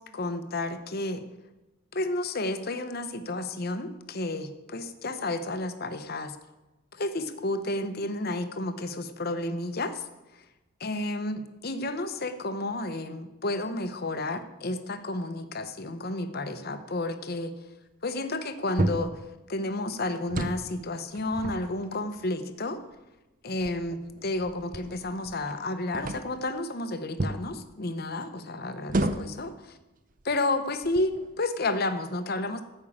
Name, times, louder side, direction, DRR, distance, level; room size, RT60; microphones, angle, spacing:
voice 1, 0.1-1.2 1.9-6.4 6.9-10.0 10.8-17.5 18.0-19.1 19.5-22.8 23.4-29.7 30.2-32.6, left 2 dB, 45° left, 9 dB, 0.9 m, -31 dB
sound 1, 18.8-19.2 20.2-20.7 21.1-22.2 22.9-23.0 23.6-25.6 25.9-26.4 27.2-27.5 28.9-29.5 30.2-30.3 30.8-31.3, right 2 dB, 40° right, 0.6 m, -32 dB
13.5 x 5.5 x 8.6 m, 1.1 s
head